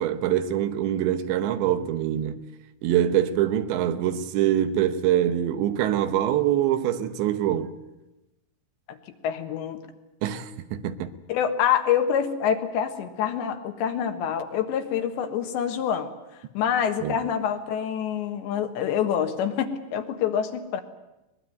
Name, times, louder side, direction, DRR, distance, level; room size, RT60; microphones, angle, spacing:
voice 1, 0.0-2.4 2.8-7.8 10.2-11.1 17.0-17.2, right 11 dB, 75° right, 3.2 m, -24 dB
voice 2, 9.2-9.8 11.3-16.1 16.6-20.8, left 8 dB, 75° left, 3.6 m, -26 dB
22.5 x 20.5 x 9.2 m
omnidirectional pair, 5.4 m